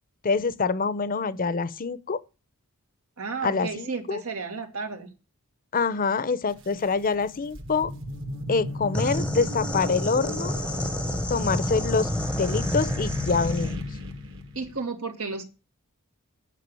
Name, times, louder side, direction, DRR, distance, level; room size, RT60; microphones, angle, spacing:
voice 1, 0.2-2.2 3.4-4.2 5.7-7.9 8.5-10.5 11.3-12.1 12.4-13.8, left 4 dB, 40° left, 0.7 m, -26 dB
voice 2, 3.2-5.1 14.5-15.4, right 4 dB, 90° right, 2.2 m, -32 dB
sound 1, 6.5-6.6 7.2-14.8, left 1 dB, 60° right, 1.9 m, -34 dB
sound 2, 8.9-13.8, left 1 dB, 5° left, 0.7 m, -30 dB
9.3 x 5.8 x 8.3 m
head